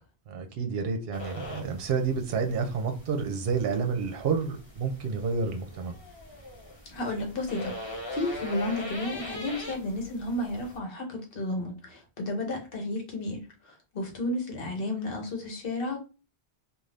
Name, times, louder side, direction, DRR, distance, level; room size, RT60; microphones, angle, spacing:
voice 1, 0.3-5.9, right 5 dB, 65° right, 0.8 m, -29 dB
sound 1, 1.1-10.8, left 1 dB, 35° left, 1.0 m, -42 dB
voice 2, 6.8-16.0, left 2 dB, 60° left, 1.1 m, -32 dB
2.6 x 2.4 x 3.2 m
omnidirectional pair, 1.1 m